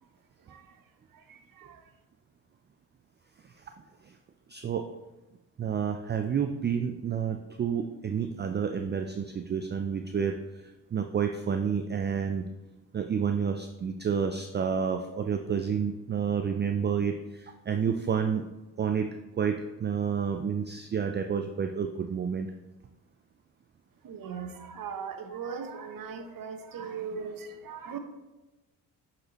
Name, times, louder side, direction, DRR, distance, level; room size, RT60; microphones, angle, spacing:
voice 1, 0.4-1.9 24.0-28.0, right 6 dB, 55° right, 7 dB, 0.9 m, -39 dB
voice 2, 4.5-4.9 5.6-12.5 12.9-18.5 18.8-19.1 19.4-22.5, right 7 dB, 30° right, 6 dB, 0.4 m, -30 dB
7.6 x 4.3 x 3.0 m, 1.1 s
cardioid pair, 70°, 41 cm